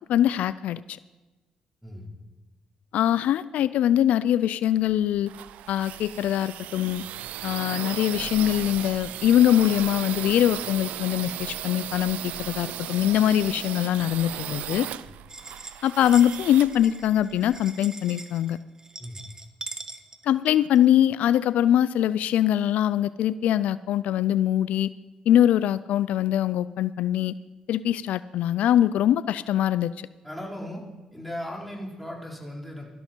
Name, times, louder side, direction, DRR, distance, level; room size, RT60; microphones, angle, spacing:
voice 1, 0.1-1.0 2.9-5.3 5.7-7.0 7.4-14.9 15.8-18.6 20.2-24.9 25.3-27.3 27.7-30.1, left 11 dB, 80° left, 16 dB, 0.3 m, -23 dB
sound 1, 4.9-17.6, right 12 dB, 85° right, 0.4 m, -36 dB
sound 2, 15.3-20.8, right 3 dB, 25° right, 1.3 m, -42 dB
voice 2, 30.2-30.8 31.1-32.8, left 1 dB, ahead, -3 dB, 4.3 m, -37 dB
17.0 x 12.5 x 4.5 m, 1.2 s
supercardioid pair, 65°, 2 cm